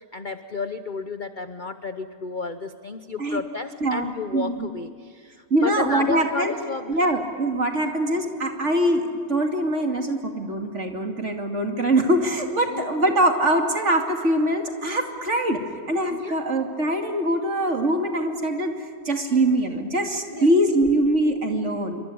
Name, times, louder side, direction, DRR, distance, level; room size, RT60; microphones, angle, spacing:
voice 1, 0.0-7.0 12.7-12.9 16.1-16.4 20.3-20.5, left 4 dB, 40° left, 10 dB, 0.7 m, -32 dB
voice 2, 3.8-4.7 5.5-6.5 6.9-15.6 15.9-18.7 19.1-22.0, right 1 dB, 45° right, 3 dB, 2.8 m, -23 dB
27.5 x 24.5 x 8.6 m, 2.2 s
omnidirectional pair, 1.8 m